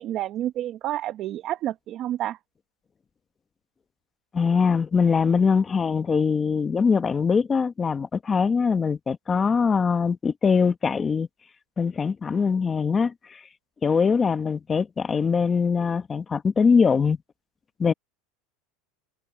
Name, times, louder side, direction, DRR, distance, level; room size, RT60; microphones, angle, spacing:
voice 1, 0.0-2.4, right 13 dB, 40° right, 0.9 m, -29 dB
voice 2, 4.3-11.3 11.8-13.4 13.8-17.2 17.8-17.9, left 5 dB, 20° left, 1.0 m, -22 dB
supercardioid pair, 150°, 0 cm